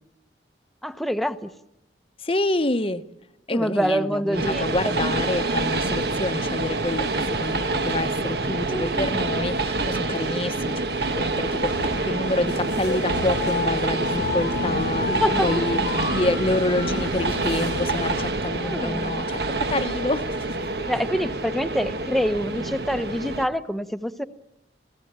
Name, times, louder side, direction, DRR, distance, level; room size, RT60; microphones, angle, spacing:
voice 1, 0.8-1.5 3.5-5.1 8.6-9.3 15.1-15.5 18.5-19.2 20.9-24.2, equal, ahead, 0.9 m, -26 dB
voice 2, 2.2-3.0 3.5-10.8 11.2-15.8 16.1-19.4 19.7-20.6, left 2 dB, 30° left, 0.9 m, -27 dB
Train, 4.3-23.5, right 3 dB, 65° right, 1.4 m, -27 dB
sound 1, 11.6-18.3, left 3 dB, 75° left, 0.9 m, -31 dB
28.5 x 17.0 x 8.7 m
head